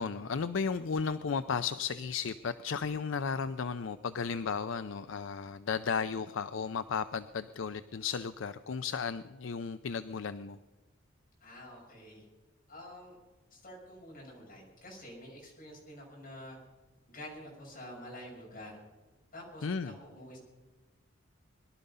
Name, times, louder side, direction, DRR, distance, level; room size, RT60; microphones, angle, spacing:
voice 1, 0.0-10.6 19.6-20.0, left 5 dB, 65° left, 12 dB, 0.5 m, -34 dB
voice 2, 11.4-12.3 12.7-13.2 13.5-16.6 17.1-18.8 19.3-20.4, left 1 dB, 40° left, -3 dB, 6.5 m, -48 dB
22.0 x 12.0 x 5.5 m, 1.3 s
head